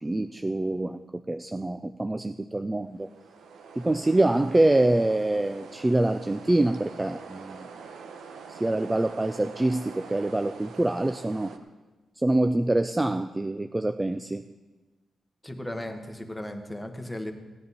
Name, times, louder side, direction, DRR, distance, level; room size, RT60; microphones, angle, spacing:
voice 1, 0.0-1.0 1.3-3.1 3.8-7.7 8.5-11.5 12.2-14.4, right 2 dB, 15° right, 9 dB, 0.3 m, -25 dB
sound 1, 2.9-11.6, right 5 dB, 85° right, 0.9 m, -45 dB
voice 2, 15.4-17.3, left 1 dB, 5° left, 4 dB, 1.2 m, -36 dB
16.5 x 10.5 x 4.2 m, 1.2 s
wide cardioid pair, 135°, 0 cm